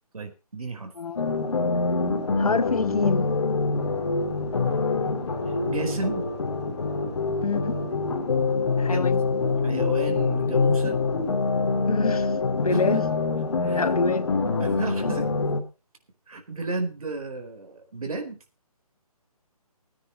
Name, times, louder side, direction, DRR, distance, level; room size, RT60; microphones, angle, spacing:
voice 1, 0.1-0.9 5.7-6.3 8.8-9.1 9.6-11.0 12.7-13.0 13.6-13.9 14.6-15.3 16.3-18.4, right 3 dB, 65° right, 4.5 m, -33 dB
sound 1, 1.2-15.6, left 4 dB, 45° left, 3.0 m, -25 dB
voice 2, 2.4-3.3 7.4-7.8 8.8-9.2 11.8-13.1 13.7-14.3, left 4 dB, 70° left, 1.6 m, -26 dB
17.5 x 9.7 x 4.2 m
hypercardioid pair, 175°, 20 cm